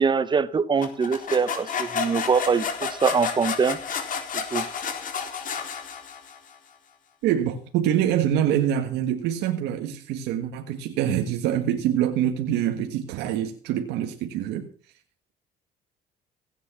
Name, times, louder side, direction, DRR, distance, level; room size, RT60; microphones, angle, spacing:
voice 1, 0.0-3.8 4.5-4.6, right 5 dB, 25° right, 1.0 m, -23 dB
sound 1, 0.8-6.5, left 6 dB, 50° left, 3.8 m, -31 dB
voice 2, 7.2-14.7, right 10 dB, 90° right, 1.5 m, -25 dB
16.5 x 9.3 x 6.0 m
cardioid pair, 110°, 17 cm